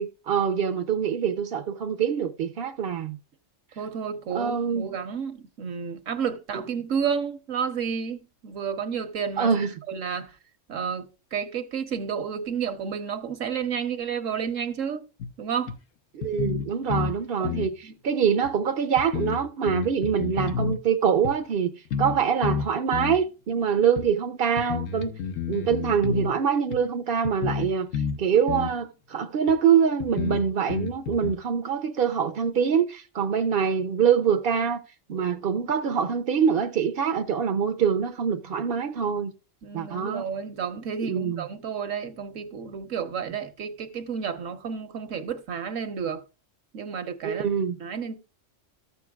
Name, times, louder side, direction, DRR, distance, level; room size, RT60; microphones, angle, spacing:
voice 1, 0.0-3.2 4.3-4.9 9.4-9.7 16.1-21.7 22.0-25.1 25.5-34.8 35.1-39.3 39.7-40.2 41.0-41.4 47.2-47.8, right 7 dB, 55° right, 0.7 m, -24 dB
voice 2, 3.8-9.5 9.9-10.3 10.7-15.1 15.4-15.7 17.4-17.9 39.6-46.2 46.7-47.5 47.8-48.2, right 7 dB, 75° right, 1.4 m, -31 dB
sound 1, 15.2-15.3 15.7-15.8 16.2-17.2 17.4-17.7 18.4-18.5 19.0-20.8 21.2-21.4 21.9-22.2 22.4-23.2 24.0-24.1 24.6-26.3 26.7-26.8 27.2-28.2 28.5-28.8 29.5-29.6 30.0-31.3, left 7 dB, 80° left, 1.2 m, -30 dB
14.0 x 7.0 x 2.3 m
omnidirectional pair, 1.3 m